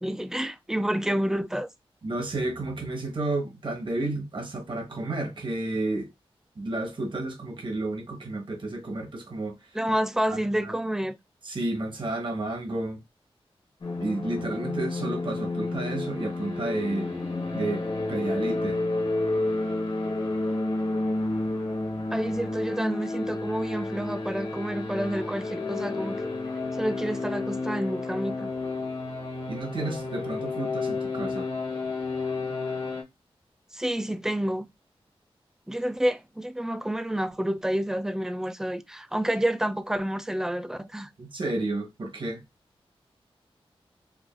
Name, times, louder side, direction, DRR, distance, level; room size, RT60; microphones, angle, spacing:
voice 1, 0.0-1.7 9.7-11.2 22.1-26.3 26.7-28.5 33.7-34.7 35.7-41.1, right 1 dB, 5° right, 0.4 m, -29 dB
voice 2, 2.0-6.1 6.6-9.5 10.3-10.7 11.4-13.0 13.9-17.1 17.5-17.8 18.1-18.8 29.5-31.5 41.2-42.4, right 2 dB, 55° right, 1.1 m, -31 dB
sound 1, 13.8-33.0, left 2 dB, 60° left, 1.4 m, -30 dB
4.8 x 2.5 x 2.5 m
wide cardioid pair, 115°, 10 cm